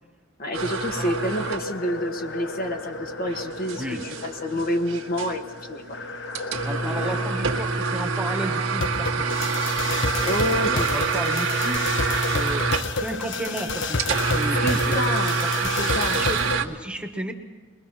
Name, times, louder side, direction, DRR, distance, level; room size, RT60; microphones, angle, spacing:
voice 1, 0.4-6.0 6.8-7.2 10.2-10.9 14.6-15.4 15.8-16.2, equal, 50° left, 4 dB, 1.5 m, -28 dB
sound 1, 0.5-16.7, right 4 dB, 85° right, 1.8 m, -27 dB
sound 2, 0.6-16.6, left 3 dB, 65° left, 1.3 m, -31 dB
voice 2, 6.6-9.5 10.1-11.8 12.3-15.0 15.4-17.3, right 1 dB, 5° right, 4 dB, 1.5 m, -34 dB
22.5 x 21.5 x 6.2 m, 1.4 s
head